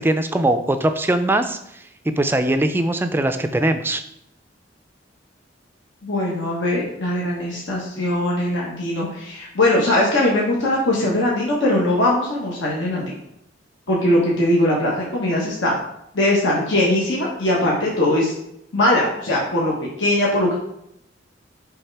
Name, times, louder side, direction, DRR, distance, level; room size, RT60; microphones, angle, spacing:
voice 1, 0.0-4.0, right 1 dB, 10° right, 8 dB, 0.4 m, -21 dB
voice 2, 6.0-13.1 13.9-15.7 16.1-18.3 18.7-19.7 20.0-20.6, left 1 dB, 75° left, -4 dB, 1.3 m, -20 dB
8.7 x 3.6 x 3.4 m, 0.77 s
head